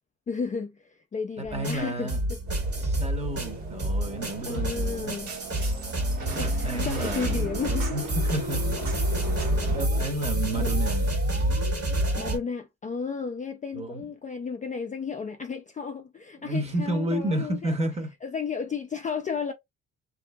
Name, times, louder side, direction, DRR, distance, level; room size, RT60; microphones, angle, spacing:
voice 1, 0.3-2.1 2.7-2.9 4.5-5.3 6.3-8.0 10.6-10.7 12.1-17.7 18.2-19.5, left 5 dB, 25° left, 0.3 m, -33 dB
voice 2, 1.4-2.2 2.8-5.2 6.3-7.3 7.9-8.8 9.2-9.4 9.7-11.2 13.7-14.1 16.4-18.1, right 1 dB, 20° right, 0.9 m, -31 dB
sound 1, 1.5-12.4, right 1 dB, 50° right, 1.5 m, -28 dB
sound 2, 2.5-9.8, right 2 dB, 65° right, 1.4 m, -35 dB
2.6 x 2.6 x 2.2 m
cardioid pair, 90°, 30 cm